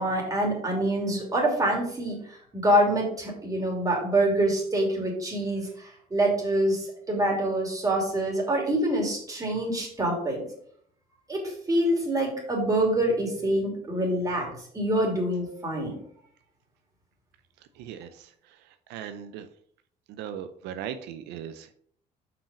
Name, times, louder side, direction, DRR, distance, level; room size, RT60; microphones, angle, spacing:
voice 1, 0.0-2.2 2.5-5.7 6.1-10.4 11.3-14.5 14.7-15.9, right 1 dB, 20° right, -1 dB, 2.9 m, -25 dB
voice 2, 18.9-19.5 20.2-21.7, right 9 dB, 90° right, 9 dB, 0.6 m, -37 dB
5.7 x 5.1 x 5.1 m, 0.63 s
cardioid pair, 110°, 17 cm